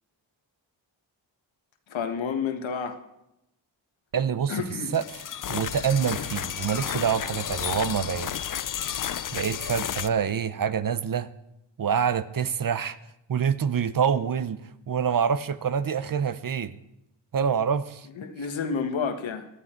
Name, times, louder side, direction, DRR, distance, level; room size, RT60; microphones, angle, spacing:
voice 1, 1.9-3.0 4.5-4.9 18.1-19.5, left 6 dB, 80° left, 7 dB, 1.5 m, -30 dB
voice 2, 4.1-4.6 4.9-5.0 5.5-8.4 9.3-11.3 11.8-13.0 13.3-14.6 14.9-16.7 17.3-18.1, right 7 dB, 45° right, 15 dB, 0.8 m, -26 dB
sound 1, 4.9-10.1, left 9 dB, 45° left, 0.5 m, -32 dB
17.5 x 11.0 x 4.5 m, 0.87 s
cardioid pair, 70°, 45 cm